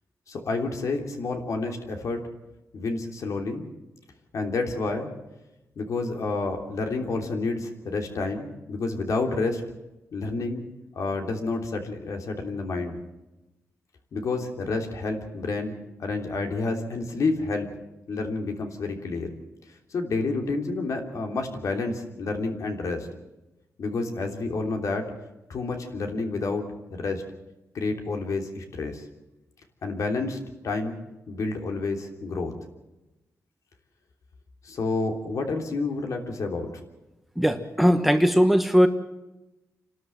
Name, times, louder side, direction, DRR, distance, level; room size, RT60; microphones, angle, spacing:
voice 1, 0.3-2.2 2.7-3.7 4.3-5.1 5.7-9.6 10.1-10.6 10.9-13.0 14.1-17.7 18.1-19.3 19.9-23.1 23.8-25.0 25.5-26.7 27.0-27.2 27.7-29.0 29.8-30.4 30.6-30.9 31.3-32.5 34.6-36.7, left 3 dB, 65° left, 3 dB, 3.2 m, -29 dB
voice 2, 37.4-38.9, equal, ahead, 7 dB, 1.3 m, -19 dB
28.0 x 12.5 x 7.6 m, 1.0 s
wide cardioid pair, 120°, 6 cm